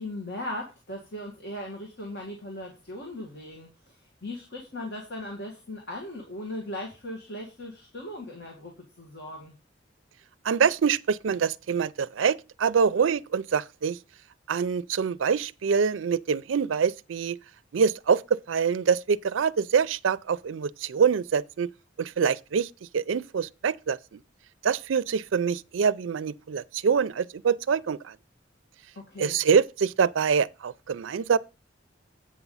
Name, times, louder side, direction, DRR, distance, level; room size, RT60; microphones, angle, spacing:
voice 1, 0.0-9.5 29.0-29.4, left 1 dB, 60° left, 2.1 m, -38 dB
voice 2, 10.4-14.0 14.5-17.4 17.7-18.2 18.5-21.7 22.0-24.0 24.6-28.1 29.2-31.4, right 6 dB, 85° right, 0.4 m, -25 dB
8.5 x 6.0 x 5.5 m
head